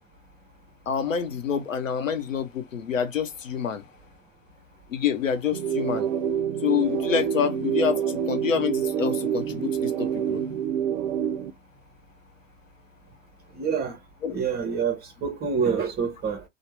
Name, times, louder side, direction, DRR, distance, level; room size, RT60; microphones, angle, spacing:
voice 1, 0.9-3.8 4.9-6.1 6.6-10.4 14.2-14.4, left 7 dB, 90° left, 0.7 m, -27 dB
sound 1, 5.5-11.5, right 8 dB, 55° right, 0.5 m, -27 dB
voice 2, 13.5-14.0 14.3-16.4, right 6 dB, 25° right, 0.7 m, -27 dB
3.1 x 2.1 x 3.2 m
hypercardioid pair, 100°, 38 cm